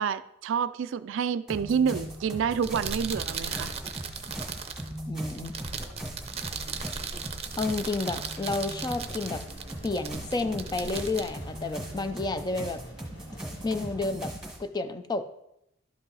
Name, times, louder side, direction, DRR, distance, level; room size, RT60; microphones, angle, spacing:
voice 1, 0.0-3.7, right 7 dB, 65° right, 14 dB, 0.3 m, -28 dB
sound 1, 1.5-14.6, right 1 dB, 5° right, 1.5 m, -39 dB
sound 2, 2.5-12.3, right 5 dB, 30° right, 0.6 m, -38 dB
voice 2, 5.1-5.5 7.6-9.4 9.8-12.8 13.6-14.3 14.6-15.3, left 3 dB, 20° left, 10 dB, 0.4 m, -30 dB
sound 3, 8.7-14.1, equal, 55° left, 3.0 m, -48 dB
11.5 x 5.3 x 4.0 m, 0.82 s
head